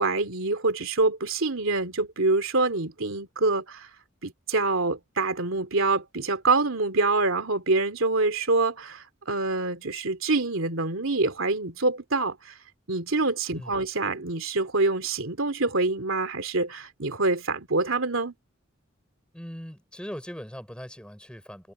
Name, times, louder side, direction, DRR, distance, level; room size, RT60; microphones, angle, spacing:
voice 1, 0.0-3.9 4.2-12.6 12.9-18.3, right 3 dB, 75° right, 2.7 m, -26 dB
voice 2, 13.5-13.8 19.3-21.7, equal, 5° left, 5.5 m, -40 dB
head